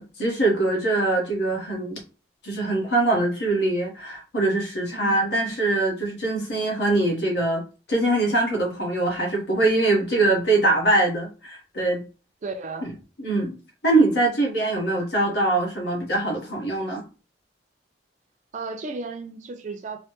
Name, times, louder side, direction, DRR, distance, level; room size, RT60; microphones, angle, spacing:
voice 1, 0.0-2.0 2.4-7.6 7.9-12.0 13.2-13.6 13.8-17.0, right 2 dB, 75° left, 1.0 m, -23 dB
voice 2, 12.4-12.9 18.5-20.0, right 3 dB, 45° right, 0.4 m, -34 dB
3.1 x 2.0 x 2.9 m
head